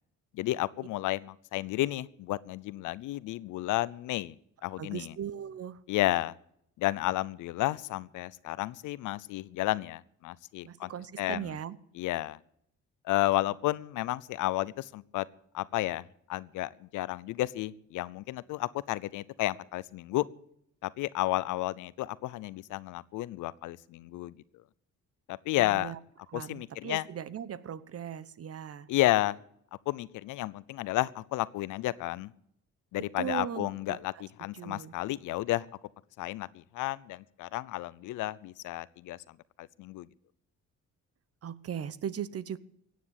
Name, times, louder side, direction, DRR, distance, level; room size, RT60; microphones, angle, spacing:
voice 1, 0.3-4.3 4.6-5.1 5.9-6.3 6.8-10.9 11.2-11.6 11.9-12.4 13.1-15.3 15.5-16.0 16.3-20.3 20.8-24.4 25.3-25.9 26.3-27.0 28.9-29.4 29.9-32.3 32.9-35.7 36.2-39.2 39.6-40.1, left 17 dB, 90° left, 20 dB, 0.7 m, -32 dB
voice 2, 4.8-5.8 10.6-11.8 25.6-26.0 26.3-28.9 33.0-34.2 34.5-34.9 41.4-42.6, right 9 dB, 50° right, 17 dB, 1.0 m, -38 dB
16.0 x 9.4 x 8.2 m, 0.73 s
cardioid pair, 90°, 30 cm